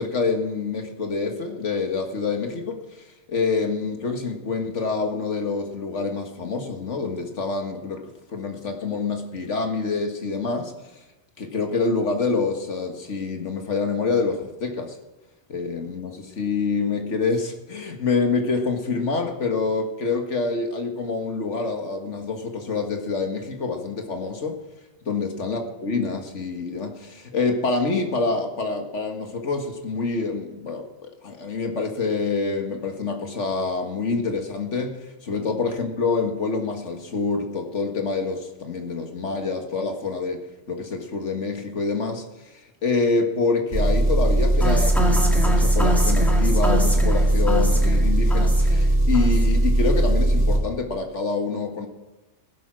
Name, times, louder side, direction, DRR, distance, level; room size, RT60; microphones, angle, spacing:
voice 1, 0.0-2.8 3.3-10.7 11.4-15.0 15.5-24.6 25.1-42.2 42.8-51.9, left 4 dB, 90° left, 4 dB, 2.0 m, -26 dB
Engine, 43.7-50.6, right 1 dB, 40° right, 3.0 m, -19 dB
sound 1, 44.6-48.9 49.1-49.6, equal, ahead, 2.3 m, -27 dB
16.0 x 11.0 x 6.2 m, 1.0 s
omnidirectional pair, 1.2 m